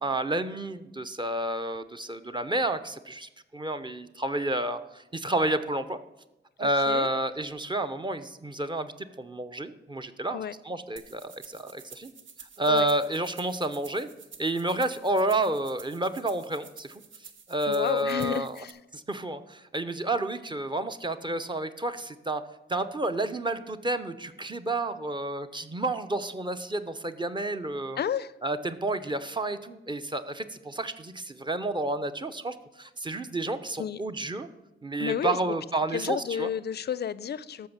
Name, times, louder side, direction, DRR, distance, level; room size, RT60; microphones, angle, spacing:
voice 1, 0.0-6.0 6.6-10.4 10.6-12.1 12.6-14.1 14.4-17.0 17.5-18.6 18.9-22.4 22.7-28.0 28.4-34.5 34.8-36.5, right 2 dB, 25° right, 9 dB, 0.7 m, -30 dB
voice 2, 6.6-7.1 10.3-10.5 12.7-12.9 17.7-18.8 28.0-28.3 33.8-34.0 35.0-35.4 35.9-37.7, left 8 dB, 55° left, 18 dB, 0.5 m, -31 dB
sound 1, 11.0-18.7, right 6 dB, 70° right, 1.2 m, -50 dB
13.0 x 6.1 x 7.3 m, 0.95 s
wide cardioid pair, 130°, 20 cm